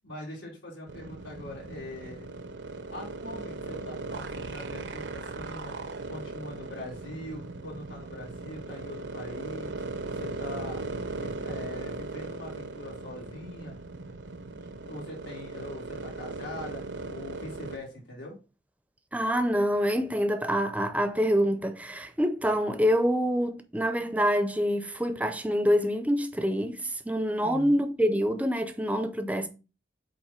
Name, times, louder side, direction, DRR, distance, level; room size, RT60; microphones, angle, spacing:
voice 1, 0.0-2.3 2.9-5.7 6.1-9.8 10.1-10.8 11.2-13.7 14.1-14.2 14.8-16.8 17.1-18.3 27.4-27.8, left 1 dB, 85° left, 3.7 m, -42 dB
sound 1, 0.9-17.8, right 3 dB, 75° right, 0.7 m, -38 dB
voice 2, 19.1-29.5, equal, 10° right, 0.5 m, -26 dB
8.1 x 3.1 x 4.4 m
head